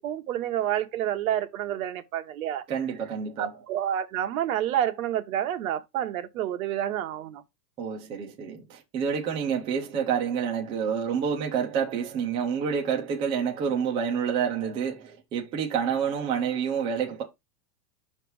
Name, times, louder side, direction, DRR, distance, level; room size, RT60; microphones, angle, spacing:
voice 1, 0.0-2.6 3.4-7.4, right 11 dB, 60° right, 1.0 m, -29 dB
voice 2, 2.7-3.5 7.8-17.2, right 7 dB, 10° right, 0.5 m, -28 dB
6.2 x 3.3 x 4.6 m
supercardioid pair, 165°, 48 cm